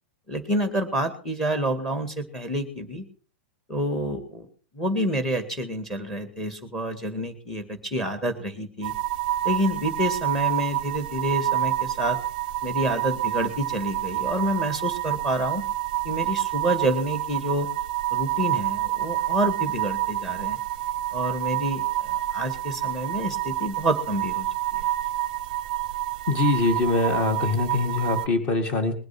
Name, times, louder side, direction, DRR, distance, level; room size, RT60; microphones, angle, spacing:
voice 1, 0.3-3.0 3.7-4.5 4.7-8.9 9.4-12.2 12.6-15.6 16.0-17.7 18.1-20.6 21.1-24.5 24.7-24.8, right 1 dB, 5° left, 7 dB, 1.9 m, -28 dB
sound 1, 8.8-28.3, right 15 dB, 40° right, 0.7 m, -28 dB
voice 2, 26.3-28.9, left 3 dB, 20° left, 8 dB, 2.0 m, -23 dB
21.0 x 7.9 x 6.0 m, 0.42 s
supercardioid pair, 180°, 6 cm